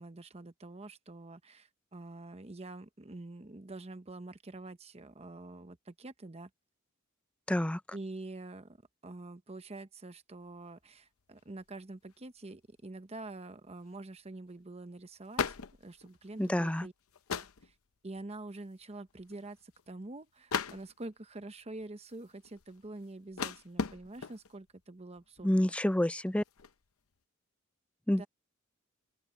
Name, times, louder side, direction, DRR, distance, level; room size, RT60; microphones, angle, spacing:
voice 1, 0.0-6.5 7.9-8.8 9.0-16.9 17.3-17.7 18.0-25.7 28.1-28.3, right 2 dB, 30° right, 0.9 m, -46 dB
voice 2, 7.5-7.8 16.4-16.9 25.4-26.4 28.1-28.2, left 1 dB, 5° left, 0.4 m, -28 dB
sound 1, 10.8-10.9 11.2-11.7 12.1-12.2 13.6-13.9 14.3-14.4 14.6-14.8 15.2-16.6 17.1-17.8 18.2-18.5 18.8-18.9 19.1-19.9 20.5-21.2 21.8-24.6 25.2-25.5 25.8-26.8, left 5 dB, 80° left, 0.8 m, -39 dB
open air
head